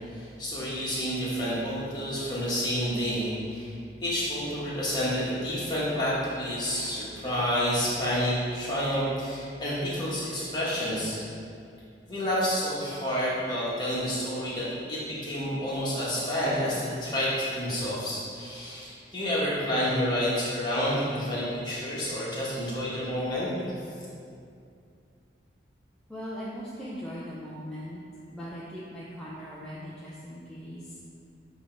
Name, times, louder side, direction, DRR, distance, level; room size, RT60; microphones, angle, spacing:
voice 1, 0.1-3.7 4.0-11.2 12.1-23.5, equal, 25° left, -8 dB, 1.5 m, -29 dB
voice 2, 26.1-28.0 28.3-30.8, equal, 5° left, -9 dB, 0.6 m, -39 dB
8.2 x 3.0 x 4.5 m, 2.4 s
head